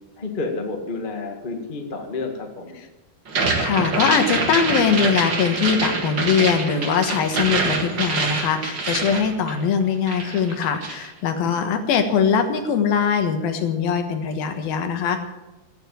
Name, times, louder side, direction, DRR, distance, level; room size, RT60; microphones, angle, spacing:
voice 1, 0.2-2.8 11.6-11.7, left 3 dB, 40° left, 2 dB, 0.6 m, -30 dB
sound 1, 3.3-9.8 10.1-11.1, right 3 dB, 40° right, 1.7 m, -25 dB
voice 2, 3.6-15.2, left 6 dB, 70° left, 7 dB, 3.0 m, -21 dB
15.0 x 9.2 x 8.9 m, 1.1 s
omnidirectional pair, 4.6 m